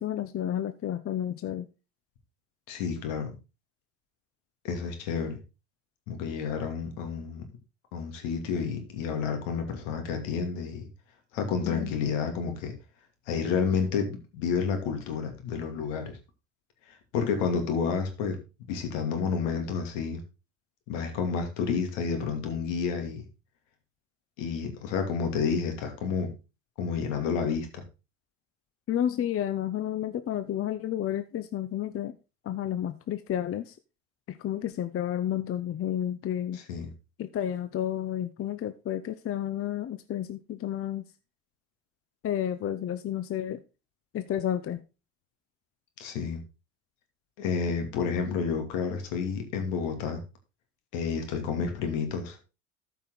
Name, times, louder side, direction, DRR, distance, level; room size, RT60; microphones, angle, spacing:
voice 1, 0.0-1.7 11.6-11.9 28.9-32.2 32.4-33.8 34.3-36.6 37.2-41.0 42.2-43.6 44.1-44.8, left 10 dB, 35° left, 11 dB, 0.8 m, -31 dB
voice 2, 2.7-3.3 4.6-5.4 6.1-7.4 7.9-10.9 11.3-12.7 13.3-16.2 16.9-18.4 18.7-20.2 20.9-23.2 24.4-26.3 26.8-27.8 36.7-36.9 46.0-46.4 47.4-50.2 50.9-52.4, left 6 dB, 75° left, 5 dB, 2.8 m, -30 dB
13.0 x 5.6 x 3.9 m, 0.29 s
hypercardioid pair, 85°, 37 cm